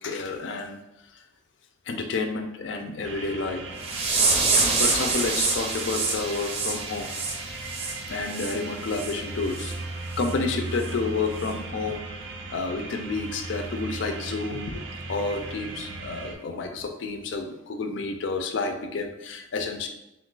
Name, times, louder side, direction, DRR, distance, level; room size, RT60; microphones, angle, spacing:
voice 1, 0.0-0.8 1.1-1.2 1.9-3.6 4.6-7.1 8.1-9.7 10.2-12.0 12.5-19.9, left 3 dB, 80° left, 6 dB, 0.4 m, -30 dB
sound 1, 3.0-16.3, right 3 dB, 85° right, 0.4 m, -37 dB
sound 2, 3.8-8.5 8.9-9.1 9.6-9.7 10.2-10.3 10.8-10.9, right 3 dB, 30° right, 0.5 m, -26 dB
2.6 x 2.4 x 3.7 m, 0.91 s
head